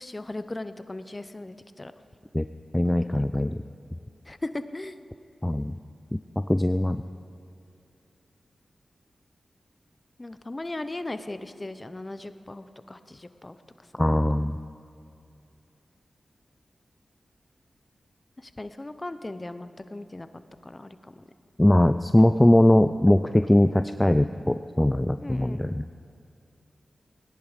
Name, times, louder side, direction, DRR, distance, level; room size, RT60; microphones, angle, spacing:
voice 1, 0.0-1.9 2.7-3.3 4.2-5.0 10.2-13.9 18.4-21.2 25.2-25.6, left 2 dB, 30° left, 11 dB, 0.8 m, -38 dB
voice 2, 2.7-3.6 5.4-5.7 6.4-7.0 14.0-14.6 21.6-25.8, left 1 dB, 15° left, 10 dB, 0.4 m, -21 dB
18.0 x 10.5 x 5.1 m, 2.6 s
cardioid pair, 40°, 0 cm